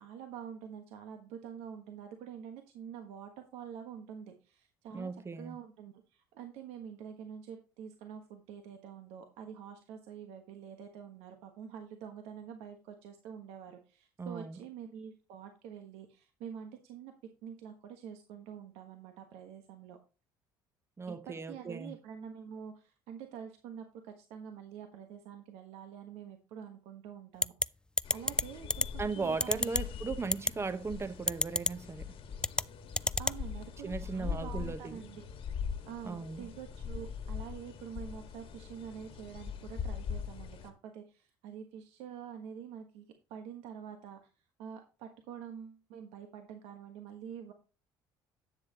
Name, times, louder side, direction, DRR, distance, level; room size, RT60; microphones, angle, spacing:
voice 1, 0.0-5.1 5.4-17.1 17.4-20.0 21.1-27.5 28.1-29.9 33.2-35.3 35.5-44.3 44.6-47.5, right 8 dB, 75° right, 1.4 m, -47 dB
voice 2, 4.9-5.6 14.2-14.6 21.0-22.0 29.0-32.1 33.8-35.0 36.0-36.5, right 4 dB, 25° right, 1.1 m, -37 dB
sound 1, 27.4-27.7 28.0-28.4 28.7-28.9 29.4-29.8 30.3-30.5 31.3-31.7 32.4-32.6 33.0-33.4, left 2 dB, 10° left, 0.3 m, -27 dB
sound 2, 28.0-40.7, left 6 dB, 60° left, 1.7 m, -42 dB
10.5 x 7.8 x 3.0 m
supercardioid pair, 70°, 11 cm